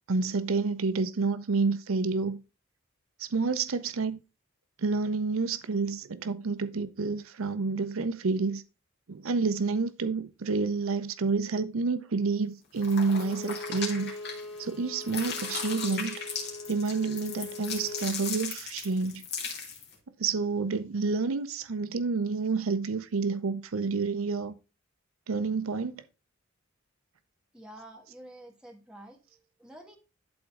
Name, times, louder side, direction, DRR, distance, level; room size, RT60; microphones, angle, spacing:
voice 1, 0.1-2.4 3.2-4.2 4.8-8.6 9.1-14.1 14.6-16.2 16.7-19.3 20.2-24.5 25.3-26.0, right 4 dB, 85° right, 0.6 m, -29 dB
sound 1, 12.8-14.7 15.0-19.9, left 5 dB, 55° left, 2.1 m, -37 dB
Bowed string instrument, 13.1-18.1, left 2 dB, 85° left, 1.2 m, -42 dB
voice 2, 27.5-30.0, right 1 dB, 5° right, 1.5 m, -49 dB
11.5 x 4.0 x 3.5 m
head